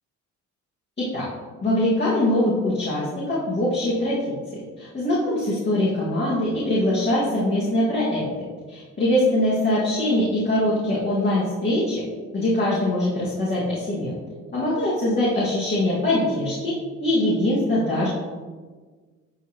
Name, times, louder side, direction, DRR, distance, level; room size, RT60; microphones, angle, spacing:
voice 1, 1.6-4.2 4.5-12.0 12.3-14.1 14.5-18.1, left 1 dB, 35° left, -8 dB, 2.2 m, -23 dB
11.5 x 4.0 x 3.1 m, 1.4 s
cardioid pair, 90°, 30 cm